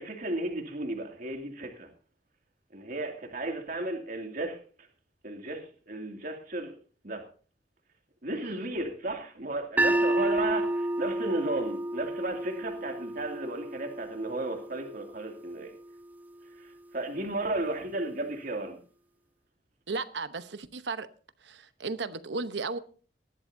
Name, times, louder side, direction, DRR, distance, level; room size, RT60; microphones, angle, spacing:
voice 1, 0.0-1.9 2.7-4.6 5.2-6.7 7.0-7.2 8.2-15.7 16.6-18.8, right 2 dB, 55° right, 2.5 m, -34 dB
sound 1, 9.8-15.9, right 1 dB, 10° right, 0.8 m, -31 dB
voice 2, 19.9-21.1 21.4-22.8, right 4 dB, 85° right, 1.0 m, -35 dB
19.0 x 12.5 x 2.7 m
head